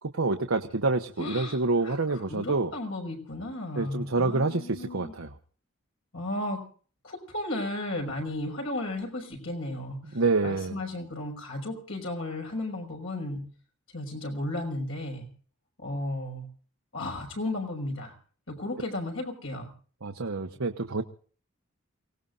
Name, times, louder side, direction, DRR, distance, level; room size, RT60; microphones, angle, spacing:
voice 1, 0.1-2.7 3.8-5.3 10.1-10.7 20.0-21.0, right 3 dB, 85° right, 4 dB, 1.1 m, -27 dB
voice 2, 1.2-5.2 6.1-6.6 7.0-13.5 13.9-15.3 15.8-16.5 16.9-18.1 18.5-19.7, left 1 dB, 75° left, 2 dB, 5.7 m, -34 dB
29.0 x 18.5 x 2.6 m, 0.42 s
head